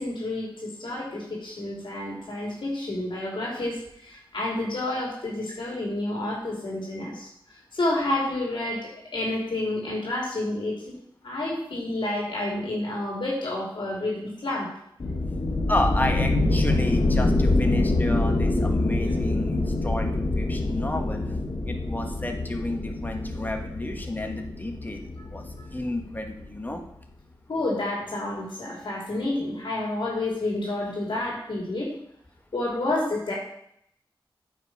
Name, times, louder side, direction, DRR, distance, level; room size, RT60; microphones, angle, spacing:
voice 1, 0.0-7.3 7.7-11.0 11.2-14.7 27.5-31.9 32.5-33.4, left 2 dB, 70° left, -3 dB, 2.8 m, -29 dB
sound 1, 15.0-26.4, left 2 dB, 55° left, 0.9 m, -25 dB
voice 2, 15.7-21.4 21.7-25.4 25.7-26.8, left 1 dB, 20° left, 4 dB, 1.4 m, -31 dB
9.1 x 6.0 x 4.7 m, 0.72 s
wide cardioid pair, 80°, 9 cm